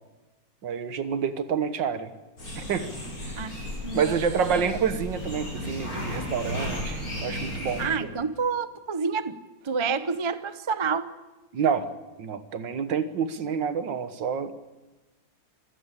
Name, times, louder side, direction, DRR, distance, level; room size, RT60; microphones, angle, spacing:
voice 1, 0.6-2.1 2.6-2.9 3.2-3.4 3.9-8.1 11.5-11.9 12.2-14.5, right 6 dB, 75° right, 11 dB, 2.0 m, -28 dB
sound 1, 2.4-7.9, left 1 dB, 50° left, 6.8 m, -34 dB
voice 2, 3.8-4.1 4.5-4.7 7.8-9.4 9.6-11.2, right 5 dB, 30° right, 13 dB, 0.5 m, -28 dB
25.5 x 16.5 x 8.4 m, 1.1 s
omnidirectional pair, 2.0 m